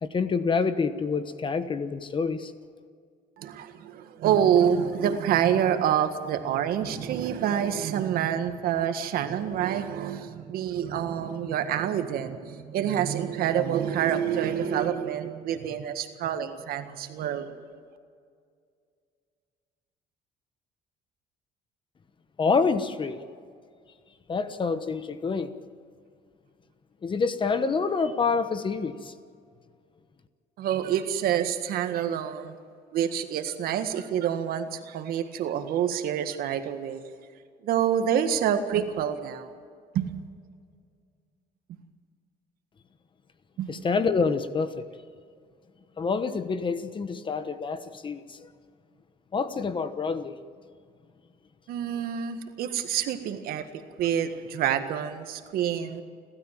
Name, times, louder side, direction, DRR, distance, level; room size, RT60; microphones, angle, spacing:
voice 1, 0.0-2.5 22.4-23.2 24.3-25.5 27.0-29.1 43.7-44.9 46.0-48.4 49.3-50.3, left 4 dB, 30° left, 11 dB, 1.1 m, -27 dB
voice 2, 3.4-17.5 30.6-32.5 32.9-37.0 37.6-39.5 39.9-40.1 43.6-43.7 51.7-53.7 54.0-56.0, right 9 dB, 70° right, 8 dB, 1.8 m, -27 dB
30.0 x 13.0 x 7.5 m, 2.2 s
cardioid pair, 115°, 16 cm